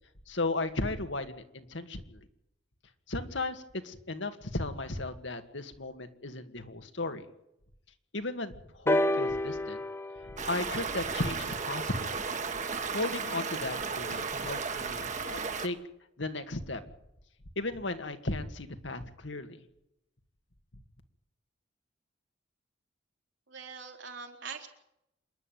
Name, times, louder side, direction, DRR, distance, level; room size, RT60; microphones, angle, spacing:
voice 1, 0.3-2.2 3.1-7.3 8.1-9.8 10.2-12.1 12.9-15.8 16.2-16.8 17.6-19.6, left 2 dB, 80° left, 8 dB, 2.1 m, -35 dB
sound 1, 8.9-12.7 13.6-13.7, left 1 dB, 15° left, 0.9 m, -32 dB
Stream, 10.4-15.7, right 5 dB, 40° right, 1.6 m, -34 dB
voice 2, 23.5-24.7, right 5 dB, 75° right, 3 dB, 3.9 m, -43 dB
27.0 x 11.0 x 9.4 m, 0.82 s
head